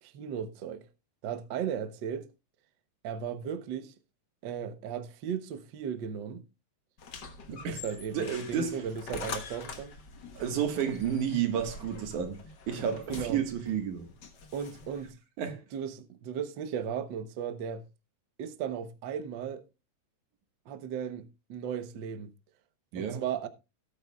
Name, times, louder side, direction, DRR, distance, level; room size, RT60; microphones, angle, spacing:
voice 1, 0.0-0.8 1.2-2.3 3.0-3.9 4.4-6.4 7.6-9.9 13.1-13.4 14.5-15.2 15.7-17.8 18.4-19.6 20.7-22.3 22.9-23.5, right 8 dB, 70° right, 1.1 m, -36 dB
sound 1, 7.0-15.1, left 4 dB, 45° left, 1.5 m, -44 dB
voice 2, 7.5-7.8 8.1-8.8 10.3-14.1 15.4-15.6 22.9-23.2, right 8 dB, 90° right, 3.0 m, -31 dB
18.0 x 8.9 x 2.3 m
omnidirectional pair, 3.3 m